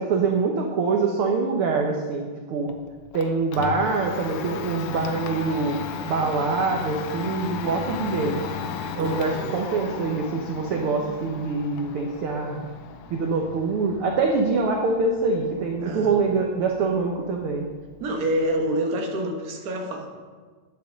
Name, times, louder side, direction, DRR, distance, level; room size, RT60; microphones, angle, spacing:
voice 1, 0.0-2.7 3.1-8.4 9.0-12.7 13.1-17.6, right 4 dB, 70° right, 1 dB, 1.3 m, -24 dB
Domestic sounds home sounds, 2.7-18.5, left 7 dB, 85° left, 2.2 m, -36 dB
voice 2, 9.0-9.5 15.8-16.1 18.0-20.1, right 1 dB, 45° right, 1 dB, 1.2 m, -27 dB
10.5 x 7.0 x 6.5 m, 1.5 s
omnidirectional pair, 3.6 m